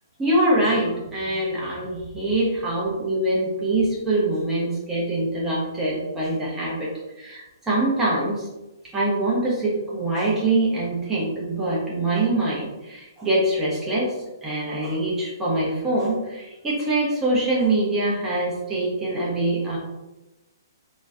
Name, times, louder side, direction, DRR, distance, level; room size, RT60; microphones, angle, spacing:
voice 1, 0.2-6.9 7.2-8.5 8.9-14.1 14.4-19.8, right 2 dB, 10° right, -6 dB, 0.7 m, -24 dB
3.8 x 2.3 x 2.5 m, 1.0 s
figure-of-eight pair, 120°, 2 cm